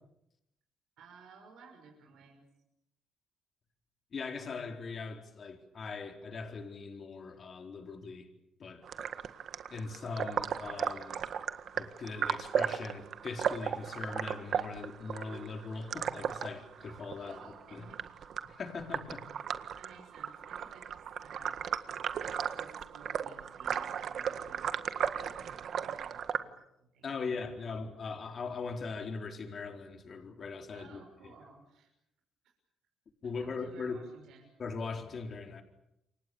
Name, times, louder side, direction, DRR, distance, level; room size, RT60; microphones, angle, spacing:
voice 1, 1.0-2.4 17.2-18.0 19.8-21.8 22.5-26.5 26.8-27.8 30.7-31.9 33.4-34.5, right 4 dB, 80° right, 6.3 m, -57 dB
voice 2, 4.1-8.3 8.6-9.1 9.7-11.4 11.7-17.9 18.4-19.2 27.0-31.0 33.2-34.0 34.6-35.6, left 4 dB, 50° left, 4.3 m, -40 dB
sound 1, 8.8-26.4, right 8 dB, 65° right, 1.7 m, -36 dB
29.0 x 24.5 x 7.1 m
cardioid pair, 90°, 0 cm